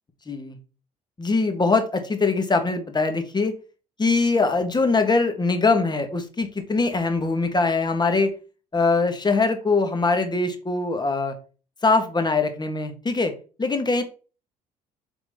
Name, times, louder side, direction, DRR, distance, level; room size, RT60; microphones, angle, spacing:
voice 1, 0.3-0.6 1.2-3.5 4.0-8.3 8.7-11.3 11.8-13.3 13.6-14.0, left 3 dB, 20° left, 7 dB, 1.5 m, -22 dB
6.7 x 4.0 x 4.3 m, 0.35 s
figure-of-eight pair, 50°, 20 cm